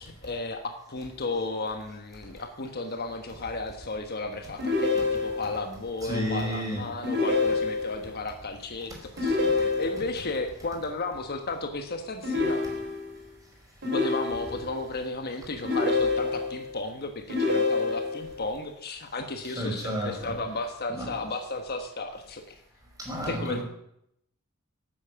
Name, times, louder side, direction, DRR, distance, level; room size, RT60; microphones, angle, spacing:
voice 1, 0.0-12.6 13.9-22.6 23.3-23.6, left 3 dB, 50° left, 1.3 m, -34 dB
sound 1, 4.6-5.6 7.0-8.1 9.2-10.2 12.2-13.2 13.8-14.8 15.6-16.7 17.3-18.3, left 3 dB, 55° right, 4.0 m, -27 dB
voice 2, 6.0-6.8 9.2-9.5 19.4-20.4 20.9-21.1 23.0-23.6, equal, 15° right, 5.4 m, -32 dB
13.0 x 8.8 x 8.6 m
head